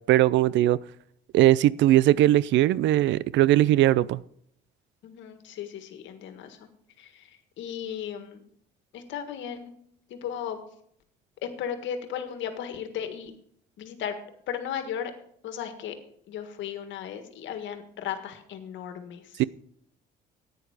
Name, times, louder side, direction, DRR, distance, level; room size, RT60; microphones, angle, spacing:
voice 1, 0.1-0.8 1.3-4.2 19.4-19.5, right 14 dB, 70° right, 0.4 m, -20 dB
voice 2, 5.0-6.7 7.0-8.4 8.9-9.7 10.1-10.6 11.4-13.3 13.8-14.1 14.5-15.1 15.4-15.9 16.3-19.4, left 9 dB, 75° left, 1.6 m, -35 dB
10.5 x 9.3 x 4.9 m
supercardioid pair, 80°, 20 cm